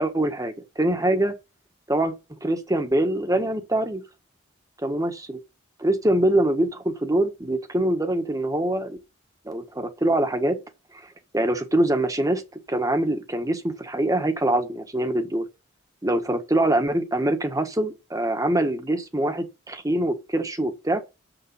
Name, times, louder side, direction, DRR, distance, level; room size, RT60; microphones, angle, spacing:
voice 1, 0.0-1.4 1.9-2.1 2.4-4.0 4.8-5.4 5.8-9.0 9.4-10.6 11.3-12.4 12.7-15.5 16.0-21.0, right 1 dB, 15° right, 1.5 m, -24 dB
7.4 x 7.1 x 5.7 m
head